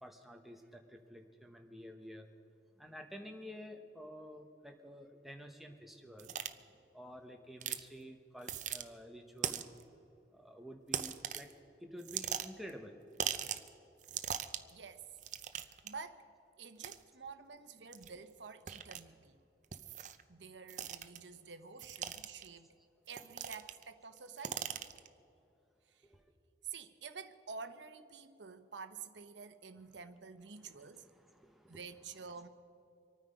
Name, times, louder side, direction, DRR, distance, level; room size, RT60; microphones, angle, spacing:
voice 1, 0.0-2.3 2.8-6.3 6.9-9.6 10.3-11.5 11.8-13.0 26.1-26.2 30.6-32.5, equal, ahead, 3 dB, 1.1 m, -51 dB
sound 1, 6.2-6.5 7.6-7.8 8.4-8.8 9.4-9.8 10.9-11.5 12.0-12.7 13.2-13.7 14.0-14.7 15.2-15.9 16.8-17.0 17.9-18.1 18.7-19.0 19.7-20.2 20.7-21.2 21.8-22.5 23.1-23.8 24.2-25.1, right 9 dB, 40° right, 0.6 m, -39 dB
voice 2, 14.7-15.1 15.5-16.3 16.6-19.4 20.3-22.7 23.1-24.8 25.9-26.0 26.7-31.1 31.7-32.5, right 5 dB, 85° right, 10 dB, 0.9 m, -49 dB
25.5 x 9.5 x 5.2 m, 2.7 s
head